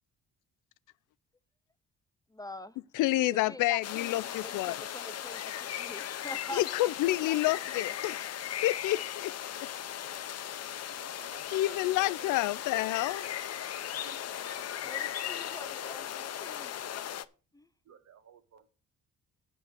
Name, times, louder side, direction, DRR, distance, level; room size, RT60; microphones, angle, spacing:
voice 1, 2.3-2.8 3.3-6.9 7.2-7.4 7.8-7.9 14.8-16.8 17.5-17.7, left 1 dB, 10° left, 0.6 m, -46 dB
voice 2, 2.9-4.7 6.5-9.3 11.5-13.3, left 17 dB, 85° left, 0.5 m, -29 dB
sound 1, 3.8-17.3, left 10 dB, 55° left, 0.7 m, -37 dB
voice 3, 11.0-12.3 13.0-13.2 14.0-15.0 15.4-15.9 17.9-18.7, right 8 dB, 60° right, 1.6 m, -55 dB
8.1 x 5.7 x 7.9 m
cardioid pair, 90°, 30 cm